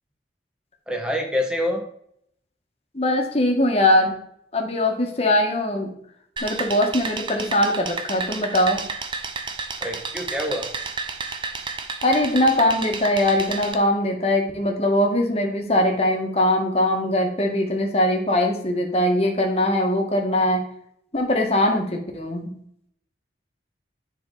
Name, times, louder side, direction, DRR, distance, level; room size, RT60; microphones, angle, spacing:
voice 1, 0.9-1.8 9.8-10.7, left 1 dB, 5° right, 2 dB, 1.4 m, -26 dB
voice 2, 2.9-4.2 4.5-5.9 6.4-8.8 12.0-20.6 21.1-22.5, left 1 dB, 35° left, 2 dB, 1.7 m, -21 dB
sound 1, 6.4-13.7, right 4 dB, 25° right, 0.8 m, -31 dB
10.0 x 6.0 x 4.0 m, 0.69 s
head